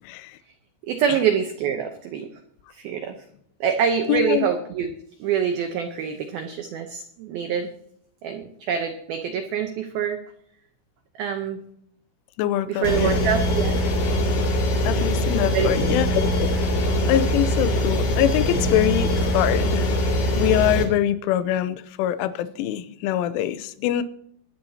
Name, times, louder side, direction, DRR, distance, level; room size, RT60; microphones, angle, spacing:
voice 1, 0.0-0.4 1.1-1.2 4.1-4.5 12.4-13.2 14.8-16.5 17.1-24.0, left 12 dB, 85° left, 13 dB, 3.2 m, -24 dB
voice 2, 0.9-2.3 2.7-3.2 3.6-4.9 5.2-7.7 8.2-10.2 11.2-11.6 12.7-13.8 15.5-15.9, right 7 dB, 80° right, 6 dB, 2.1 m, -25 dB
sound 1, 12.8-20.8, equal, 55° left, 4.1 m, -22 dB
22.0 x 9.9 x 2.9 m, 0.69 s
omnidirectional pair, 5.6 m